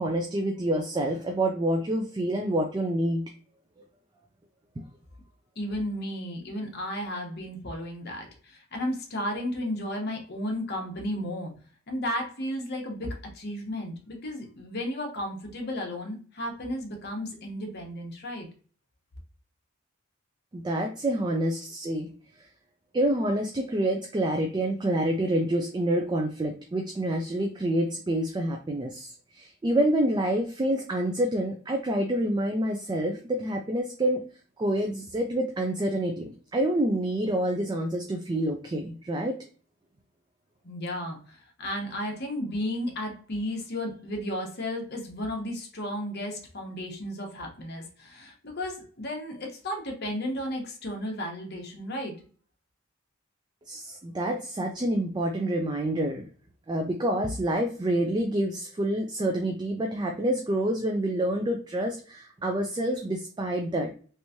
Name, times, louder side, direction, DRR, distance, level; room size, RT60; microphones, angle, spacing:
voice 1, 0.0-3.2 20.5-22.1 22.4-22.5 22.9-34.2 34.6-39.4 53.7-56.2 56.7-64.0, right 1 dB, 20° right, 3 dB, 0.3 m, -27 dB
voice 2, 5.6-11.5 11.9-18.5 40.6-52.1, left 1 dB, 50° left, 1 dB, 0.9 m, -33 dB
3.3 x 3.0 x 2.6 m, 0.43 s
head